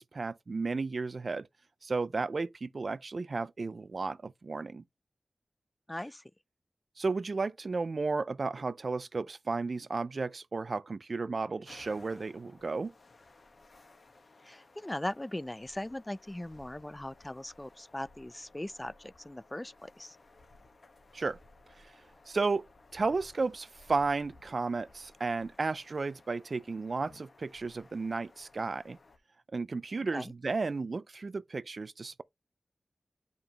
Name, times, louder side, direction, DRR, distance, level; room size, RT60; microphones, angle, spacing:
voice 1, 0.0-1.5 1.8-4.8 7.0-12.9 21.1-21.4 22.3-22.7 22.9-29.0 29.5-32.2, right 3 dB, 60° right, 0.4 m, -33 dB
voice 2, 5.9-6.2 14.4-20.2 30.0-30.3, left 1 dB, 15° left, 0.3 m, -39 dB
sound 1, 11.7-29.2, left 2 dB, 60° left, 1.5 m, -59 dB
6.9 x 5.3 x 3.0 m
cardioid pair, 55°, 0 cm